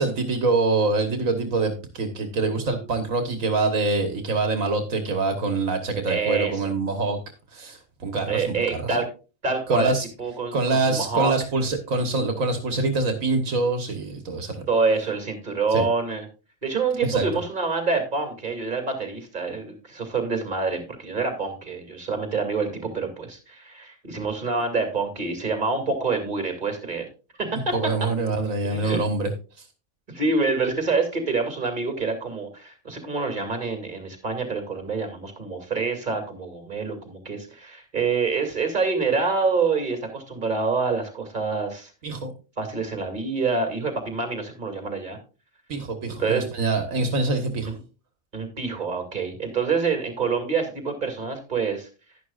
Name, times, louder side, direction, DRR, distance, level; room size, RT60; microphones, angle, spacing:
voice 1, 0.0-7.2 7.5-8.5 9.7-10.0 10.5-14.7 15.7-15.8 17.1-17.2 27.7-29.3 29.6-29.7 42.0-42.3 45.7-47.7, right 3 dB, 80° right, 7 dB, 1.7 m, -25 dB
voice 2, 6.1-6.6 8.3-9.1 9.4-9.9 10.2-11.3 14.7-16.3 16.6-27.1 27.4-27.8 28.6-29.0 30.1-41.9 42.6-45.2 46.2-46.4 47.6-47.8 48.3-51.9, right 4 dB, 35° right, 5 dB, 2.5 m, -26 dB
11.5 x 10.5 x 2.4 m, 0.33 s
omnidirectional pair, 1.4 m